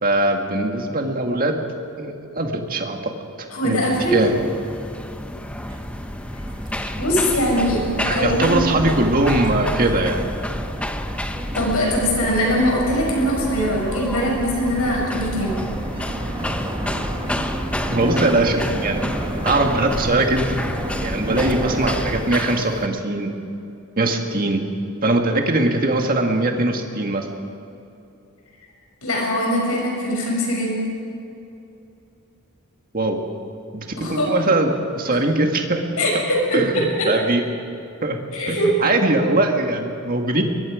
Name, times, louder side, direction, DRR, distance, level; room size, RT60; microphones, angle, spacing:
voice 1, 0.0-1.6 2.0-3.1 3.6-3.8 4.1-4.3 8.0-10.3 17.9-19.0 19.4-20.7 21.0-23.3 24.0-24.7 25.0-27.3 32.9-33.2 33.7-34.7 35.0-35.8 36.5-37.4 38.0-38.2 38.5-40.4, right 2 dB, 40° right, 3 dB, 2.0 m, -21 dB
voice 2, 3.5-4.2 7.0-7.8 8.1-8.7 11.5-15.6 29.0-30.8 34.0-34.3 36.0-37.4 38.3-38.7, equal, 70° left, -2 dB, 6.6 m, -21 dB
sound 1, 3.9-22.9, left 1 dB, 5° left, 0.8 m, -31 dB
sound 2, 4.9-22.2, right 1 dB, 20° right, 1.9 m, -30 dB
23.0 x 22.0 x 5.1 m, 2.8 s
head